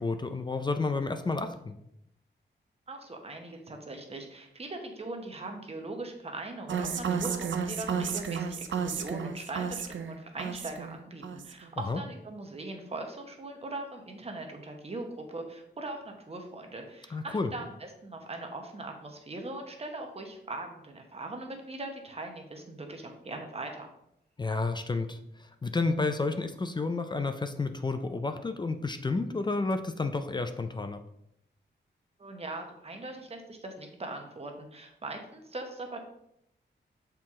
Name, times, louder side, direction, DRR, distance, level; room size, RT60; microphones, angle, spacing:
voice 1, 0.0-1.8 11.9-12.0 17.1-17.5 24.4-31.0, left 3 dB, 25° left, 8 dB, 0.4 m, -31 dB
voice 2, 2.9-23.9 32.2-36.0, right 2 dB, 30° right, 4 dB, 1.0 m, -40 dB
sound 1, 6.7-11.0 11.2-11.7, right 6 dB, 80° right, 0.6 m, -32 dB
7.5 x 4.5 x 3.6 m, 0.78 s
wide cardioid pair, 160°, 19 cm